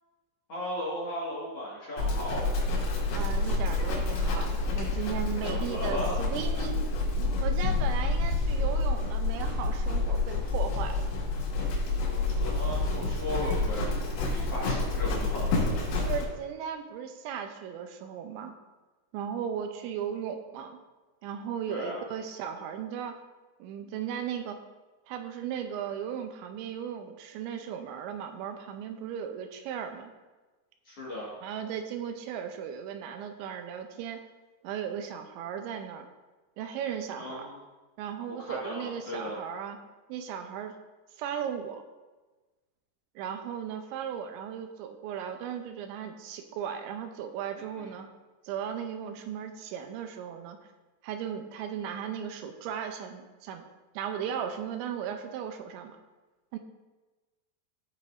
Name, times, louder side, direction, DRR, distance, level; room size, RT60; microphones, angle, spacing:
voice 1, 0.5-2.4 5.5-6.2 12.1-13.9 14.3-15.5 21.7-22.0 30.9-31.3 37.2-37.6 38.3-39.4, equal, 45° left, -7 dB, 2.0 m, -36 dB
Livestock farm animals working animals, 2.0-16.3, left 3 dB, 90° left, 4.3 m, -28 dB
voice 2, 3.1-6.8 7.4-11.0 16.0-18.5 19.1-20.8 21.2-23.2 23.6-24.6 25.1-30.1 31.4-34.2 34.6-36.1 36.6-37.5 38.0-39.8 40.1-40.8 41.2-41.8 43.2-48.1 48.4-50.6 51.0-53.6 53.9-56.0 56.5-56.6, right 8 dB, 90° right, 6 dB, 3.0 m, -36 dB
16.0 x 6.2 x 2.6 m, 1.2 s
omnidirectional pair, 5.2 m